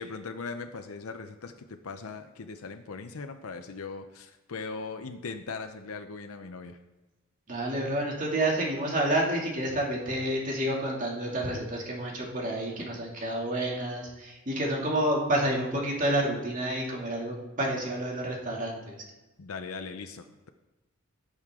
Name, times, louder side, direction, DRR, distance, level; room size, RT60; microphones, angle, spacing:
voice 1, 0.0-6.8 19.4-20.5, left 4 dB, 90° left, 7 dB, 0.7 m, -39 dB
voice 2, 7.5-19.0, right 1 dB, 40° right, -2 dB, 2.5 m, -29 dB
17.5 x 6.5 x 3.7 m, 1.1 s
head